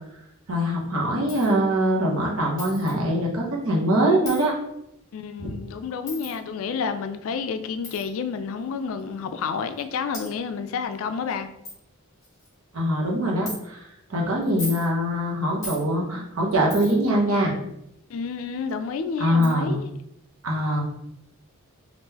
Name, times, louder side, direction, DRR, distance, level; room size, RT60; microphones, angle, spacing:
voice 1, 0.5-4.5 5.4-5.5 12.7-13.8 14.1-17.5 19.2-19.8 20.4-20.8, equal, 75° right, 0.9 m, -23 dB
Coin (dropping), 1.3-1.5 2.6-2.9 4.2-4.5 6.1-6.4 7.8-8.0 9.0-9.1 9.8-9.9 10.1-10.3 10.9-11.0 11.3-11.4 11.6-11.8 12.2-12.5 13.5-13.6 14.4-14.9 15.6-15.8 16.7-17.1 18.7-18.8 19.4-19.5, left 2 dB, 15° left, 1.1 m, -37 dB
voice 2, 5.1-11.5 18.1-19.9, left 5 dB, 65° left, 0.3 m, -30 dB
3.6 x 2.5 x 2.8 m
head